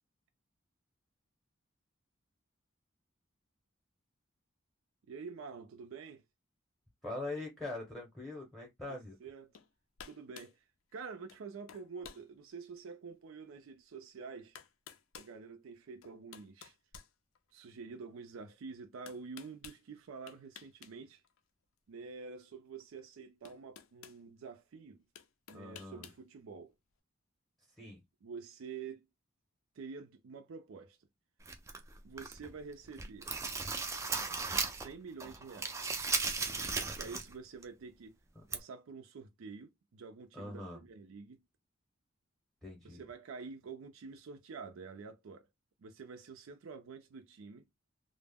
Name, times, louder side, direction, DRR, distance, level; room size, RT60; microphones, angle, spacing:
voice 1, 5.1-6.2 8.9-9.5 10.0-10.6 10.9-14.6 15.2-16.8 17.5-21.2 21.9-25.0 25.5-26.7 28.2-29.1 29.8-31.0 32.0-33.3 34.7-35.9 36.7-38.2 38.5-41.4 42.8-45.5 45.8-47.7, right 5 dB, 85° right, 0.4 m, -48 dB
voice 2, 7.0-9.2 25.5-26.1 27.8-28.0 38.4-38.5 40.3-40.8 42.6-43.0, left 2 dB, ahead, 0.7 m, -42 dB
sound 1, 9.5-9.7 10.0-10.6 11.3-11.4 11.7-12.3 12.8-12.9 14.0-14.1 14.6-15.4 16.0-17.7 19.1-19.8 20.3-20.9 21.2-21.4 22.8-22.9 23.5-24.2 25.2-26.2, left 8 dB, 85° left, 0.4 m, -53 dB
sound 2, 31.5-32.5 32.9-34.9 35.2-37.3 37.6-37.7 38.5-38.6, right 4 dB, 15° right, 0.3 m, -36 dB
2.1 x 2.0 x 3.4 m
head